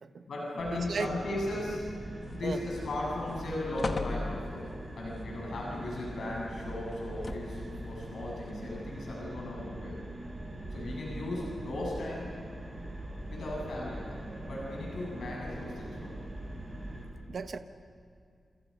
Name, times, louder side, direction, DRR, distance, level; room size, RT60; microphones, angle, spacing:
voice 1, 0.3-1.9 2.3-4.7 5.0-10.0 10.7-12.4 13.3-14.1 14.5-16.1, left 1 dB, 85° left, -3 dB, 7.4 m, -36 dB
sound 1, 0.6-17.1, right 1 dB, 20° right, 6.1 m, -42 dB
sound 2, 2.2-2.8 3.2-3.3 3.8-4.8 6.9-7.7 8.5-8.6, left 3 dB, 40° left, 1.3 m, -37 dB
sound 3, 2.4-17.0, right 1 dB, 10° left, 6.3 m, -51 dB
voice 2, 17.3-17.6, right 5 dB, 55° right, 8 dB, 1.0 m, -34 dB
29.5 x 27.5 x 5.5 m, 2.4 s
wide cardioid pair, 160°, 0 cm